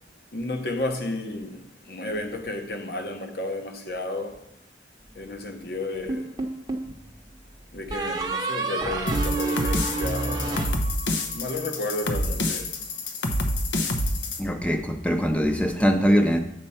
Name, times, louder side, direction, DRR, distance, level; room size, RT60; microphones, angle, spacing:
voice 1, 0.3-4.4 5.1-6.3 7.7-10.7 11.3-12.7, left 2 dB, 55° left, 0.9 m, -32 dB
sound 1, 6.1-6.9 7.9-11.4, right 3 dB, 20° right, 0.8 m, -29 dB
sound 2, 9.1-14.4, left 1 dB, 85° left, 0.8 m, -27 dB
voice 2, 14.4-16.4, equal, 5° left, 0.5 m, -22 dB
8.0 x 4.4 x 5.6 m
head